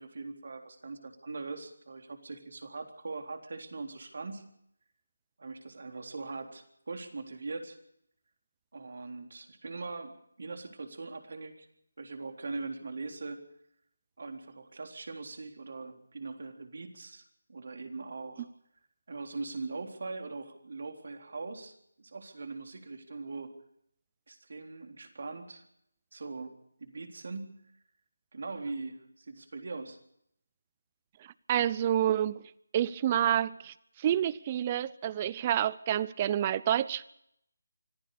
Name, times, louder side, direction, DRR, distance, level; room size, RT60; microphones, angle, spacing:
voice 1, 0.0-4.4 5.4-7.8 8.7-11.7 12.0-13.4 14.2-17.2 17.5-18.5 19.1-23.5 24.3-25.6 26.1-27.5 28.3-30.0, right 3 dB, 60° right, 5 dB, 3.8 m, -41 dB
voice 2, 31.5-32.4 32.7-37.1, right 11 dB, 25° right, 20 dB, 0.7 m, -28 dB
25.0 x 15.5 x 6.9 m, 0.74 s
figure-of-eight pair, 165°, 0 cm